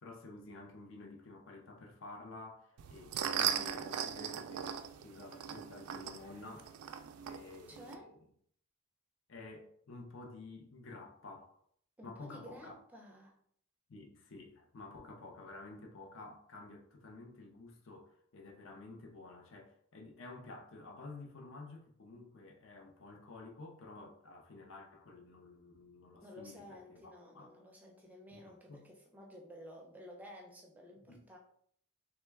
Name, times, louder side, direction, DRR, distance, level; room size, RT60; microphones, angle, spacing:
voice 1, 0.0-6.7 7.2-8.2 9.3-11.5 12.0-12.7 13.9-27.5 28.3-28.9 31.1-31.2, left 2 dB, 55° left, 0.6 m, -51 dB
sound 1, 2.8-8.0, right 8 dB, 85° right, 0.3 m, -38 dB
voice 2, 7.7-8.1 12.0-13.4 26.2-31.4, equal, 5° right, 0.4 m, -53 dB
3.0 x 2.2 x 3.4 m
head